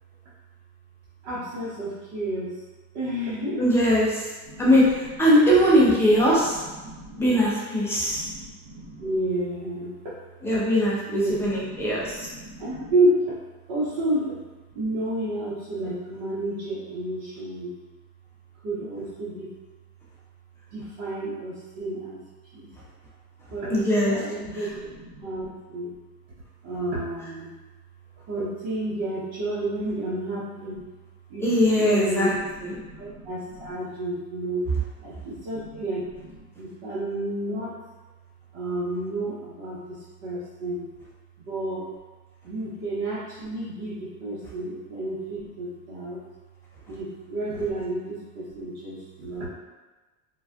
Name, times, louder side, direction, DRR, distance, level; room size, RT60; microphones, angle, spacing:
voice 1, 1.2-2.6 2.9-3.7 4.4-5.2 6.1-7.5 8.0-9.9 11.0-13.3 13.7-14.5 14.7-17.7 18.6-19.5 20.7-22.2 22.5-22.7 23.5-26.0 26.6-27.5 28.3-30.8 31.3-34.6 35.0-37.8 38.5-40.9 41.4-41.9 42.4-46.2 46.9-49.5, right 1 dB, 65° right, -11 dB, 1.0 m, -31 dB
voice 2, 3.6-4.3 4.6-6.6 7.2-8.3 10.4-12.3 23.7-24.2 24.5-24.6 31.4-32.3 32.6-32.8, equal, 5° left, -7 dB, 0.3 m, -21 dB
2.5 x 2.1 x 2.4 m, 1.2 s
supercardioid pair, 105°, 48 cm